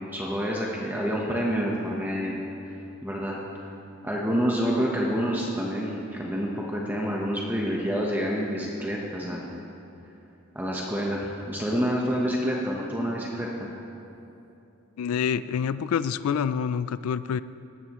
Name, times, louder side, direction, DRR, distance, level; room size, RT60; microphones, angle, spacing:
voice 1, 0.0-2.3 3.0-3.4 4.0-9.6 10.5-13.7, equal, 10° right, -3 dB, 1.0 m, -28 dB
voice 2, 15.0-17.4, left 7 dB, 80° left, 15 dB, 0.3 m, -27 dB
17.5 x 13.5 x 3.1 m, 2.8 s
head